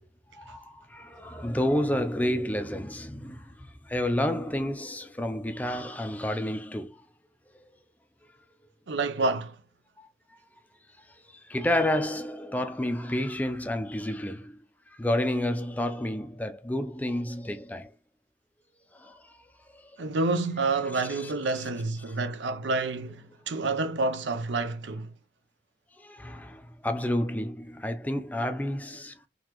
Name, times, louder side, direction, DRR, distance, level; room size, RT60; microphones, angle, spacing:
voice 1, 0.3-7.0 10.0-10.1 11.0-14.6 14.9-17.9 18.9-19.4 19.7-19.9 20.9-21.3 21.6-21.7 22.1-22.2 26.0-29.3, left 1 dB, 10° left, 0.4 m, -30 dB
voice 2, 8.9-9.6 20.0-25.1, right 3 dB, 80° right, 0.6 m, -28 dB
3.9 x 2.7 x 2.9 m
head